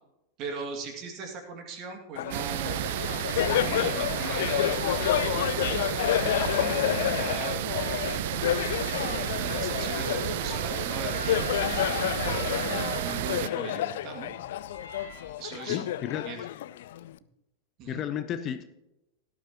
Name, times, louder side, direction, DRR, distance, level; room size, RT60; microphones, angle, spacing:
voice 1, 0.4-3.0 3.5-4.7 5.1-5.7 6.5-7.9 9.0-12.0 12.9-14.4 15.4-15.9 16.3-16.4 17.8-18.0, right 5 dB, 35° right, 4 dB, 2.4 m, -39 dB
Laughter, 2.2-17.2, left 12 dB, 55° left, 0.4 m, -30 dB
sound 1, 2.3-13.5, right 15 dB, 50° right, 0.3 m, -32 dB
sound 2, 6.3-15.3, right 2 dB, 80° right, 4.2 m, -45 dB
voice 2, 15.6-16.3 17.9-18.6, left 10 dB, 35° left, 10 dB, 0.8 m, -33 dB
17.5 x 11.0 x 3.0 m, 0.90 s
figure-of-eight pair, 90°, 0 cm